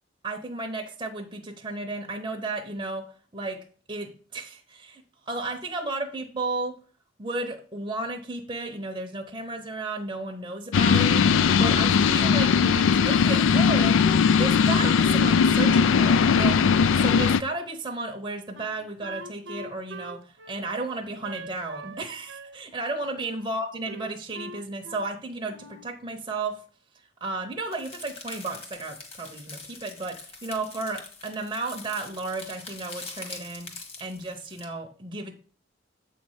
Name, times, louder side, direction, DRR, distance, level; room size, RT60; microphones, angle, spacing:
voice 1, 0.2-6.8 7.2-11.3 11.6-14.0 14.4-16.6 16.9-26.6 27.2-33.7 34.0-35.4, right 2 dB, 25° right, 3 dB, 0.7 m, -33 dB
sound 1, 10.7-17.4, left 6 dB, 85° left, 0.3 m, -19 dB
Wind instrument woodwind instrument, 18.5-22.0 22.3-23.4 23.9-25.1 25.5-25.9, right 3 dB, 75° right, 0.8 m, -43 dB
sound 2, 27.7-34.7, left 3 dB, 30° left, 1.5 m, -43 dB
7.8 x 3.1 x 6.3 m, 0.43 s
head